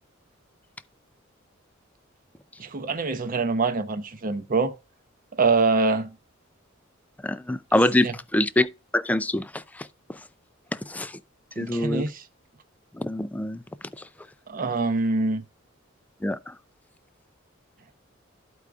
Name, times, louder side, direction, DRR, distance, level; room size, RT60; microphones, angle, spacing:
voice 1, 2.6-4.7 5.4-6.1 8.0-8.1 11.6-12.2 14.5-15.4, right 3 dB, 45° right, 0.7 m, -24 dB
voice 2, 7.2-8.7 8.9-10.2 10.9-11.1 11.6-12.0 12.9-13.6 16.2-16.5, left 1 dB, 10° left, 0.3 m, -25 dB
13.0 x 4.7 x 2.3 m
head